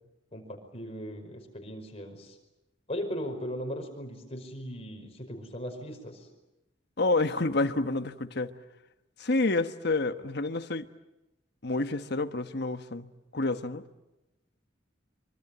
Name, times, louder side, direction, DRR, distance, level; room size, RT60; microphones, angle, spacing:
voice 1, 0.3-2.4 2.9-6.3, equal, 30° left, 3 dB, 5.3 m, -38 dB
voice 2, 7.0-8.5 9.2-10.9 11.6-13.8, left 2 dB, 55° left, 9 dB, 1.3 m, -29 dB
25.0 x 25.0 x 9.0 m, 0.97 s
head